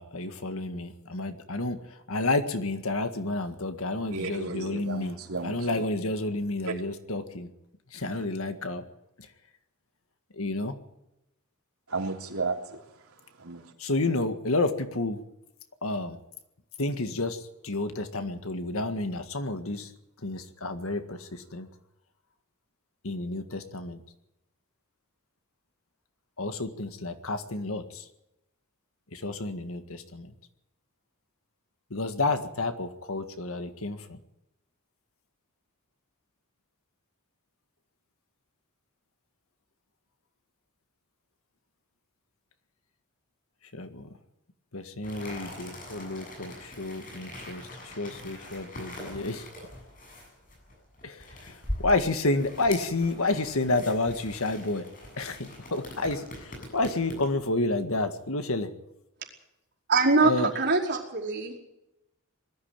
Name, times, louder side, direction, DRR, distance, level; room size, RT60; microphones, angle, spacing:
voice 1, 0.0-1.8 2.1-5.2 5.4-7.5 7.9-8.8 10.4-10.8 13.8-15.2 15.8-16.2 16.8-17.4 17.6-19.9 20.2-21.2 21.5-21.7 23.0-24.0 26.4-28.0 29.1-30.3 31.9-34.2 43.7-44.1 44.7-49.4 51.0-51.2 51.4-51.5 51.8-54.8 55.2-58.7 60.2-60.5, left 2 dB, 70° left, 1.8 m, -30 dB
voice 2, 4.1-5.9 6.6-6.7 8.1-8.2 11.9-13.7, right 3 dB, 85° right, 3.4 m, -34 dB
sound 1, 45.0-57.4, left 1 dB, 40° left, 7.5 m, -42 dB
voice 3, 59.9-61.6, right 3 dB, 55° right, 5.0 m, -23 dB
21.0 x 14.0 x 9.1 m
head